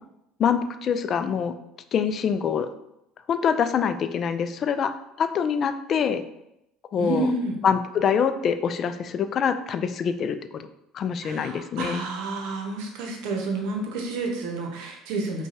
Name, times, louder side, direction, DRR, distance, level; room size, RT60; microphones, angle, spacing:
voice 1, 0.4-1.5 1.9-2.7 3.3-4.9 5.2-6.2 6.9-7.3 7.6-10.6 10.9-12.0, left 7 dB, 50° left, 10 dB, 0.3 m, -25 dB
voice 2, 7.0-7.6 11.2-15.5, right 3 dB, 70° right, 3 dB, 0.7 m, -29 dB
5.2 x 2.3 x 2.8 m, 0.84 s
hypercardioid pair, 75°, 0 cm